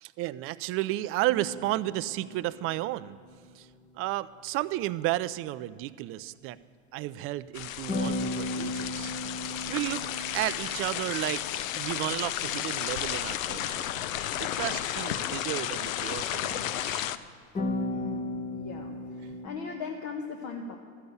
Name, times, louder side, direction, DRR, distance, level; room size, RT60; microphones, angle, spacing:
voice 1, 0.0-3.2 3.5-3.7 4.0-6.6 6.9-9.1 9.7-10.0 10.3-11.4 11.7-13.9 14.4-17.1 19.2-19.3, right 16 dB, 35° right, 16 dB, 0.4 m, -32 dB
sound 1, 1.3-3.6 7.9-12.7 17.5-19.5, left 2 dB, 20° left, 1.0 m, -36 dB
sound 2, 7.5-17.2, left 11 dB, 75° left, 0.6 m, -33 dB
voice 2, 17.9-20.8, left 5 dB, 45° left, 3 dB, 1.2 m, -39 dB
13.0 x 6.9 x 8.0 m, 2.2 s
hypercardioid pair, 90°, 40 cm